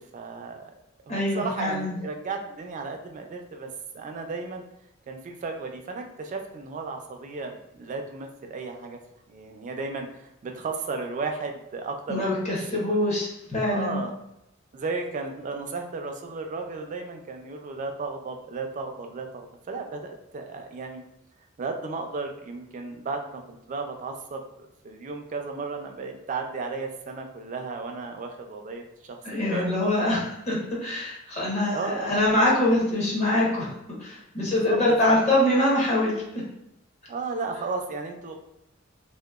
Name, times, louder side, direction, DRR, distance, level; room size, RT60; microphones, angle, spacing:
voice 1, 0.1-0.7 1.1-3.7 3.9-4.6 5.1-9.0 9.3-12.3 12.8-13.0 13.7-14.1 14.7-21.0 21.6-29.7 31.7-32.2 34.5-34.8 35.1-35.2 37.1-38.4, right 4 dB, 40° right, 4 dB, 0.3 m, -34 dB
voice 2, 1.1-1.9 12.1-14.0 29.2-33.7 34.0-36.4, left 1 dB, 35° left, -4 dB, 0.8 m, -24 dB
2.8 x 2.0 x 2.3 m, 0.83 s
head